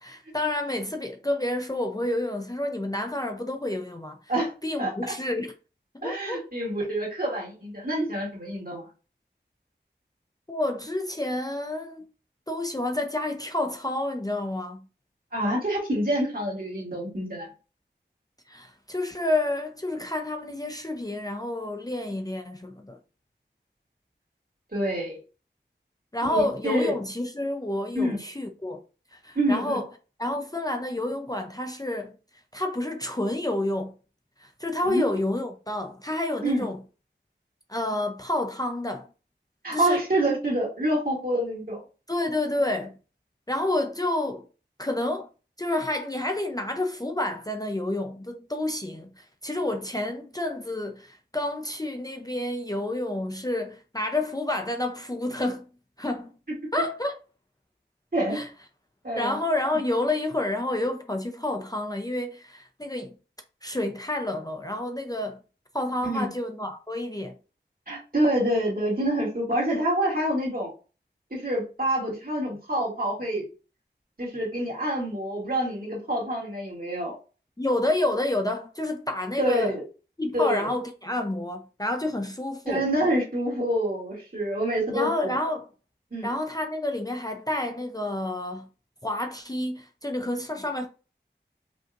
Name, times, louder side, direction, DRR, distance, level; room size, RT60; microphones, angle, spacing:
voice 1, 0.0-4.2 4.6-5.5 6.0-6.4 10.5-12.1 12.5-14.8 18.5-23.0 26.1-28.8 29.1-29.9 30.2-32.1 32.5-33.9 34.4-36.8 37.7-39.1 39.7-40.0 42.1-43.0 43.5-44.5 44.8-45.3 45.6-55.6 56.0-56.3 56.7-57.2 58.3-58.5 59.2-63.1 63.6-65.4 65.7-67.4 77.6-79.7 80.2-82.8 84.9-85.7 86.2-88.7 89.0-90.9, left 1 dB, 20° left, 0.5 m, -29 dB
voice 2, 6.0-8.9 15.3-17.5 24.7-25.2 26.2-26.9 27.9-28.2 29.4-29.8 34.8-35.0 36.4-36.6 39.6-41.8 58.1-58.4 59.0-59.4 66.0-66.3 67.9-70.7 71.3-73.4 74.2-77.1 79.4-79.8 80.3-80.7 82.7-85.4 86.1-86.3, right 1 dB, 50° right, 2.1 m, -27 dB
5.1 x 2.8 x 2.5 m
wide cardioid pair, 55°, 19 cm